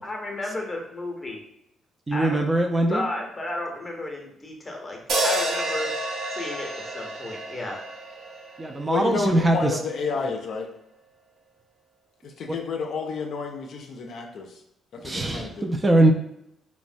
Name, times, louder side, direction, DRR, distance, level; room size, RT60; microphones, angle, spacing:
voice 1, 0.0-1.4 2.1-2.4 2.9-5.0 5.2-5.9 6.3-7.8, left 2 dB, 25° left, 1 dB, 0.7 m, -33 dB
voice 2, 2.1-3.0 8.6-9.7 12.5-12.6 15.0-16.1, right 1 dB, 25° right, 3 dB, 0.3 m, -21 dB
sound 1, 5.1-9.4, right 1 dB, 70° right, 0.6 m, -29 dB
voice 3, 8.9-10.7 12.2-14.6 14.9-15.7, left 4 dB, 65° left, 2 dB, 0.4 m, -30 dB
3.0 x 2.1 x 2.5 m, 0.78 s
cardioid pair, 90°, 0 cm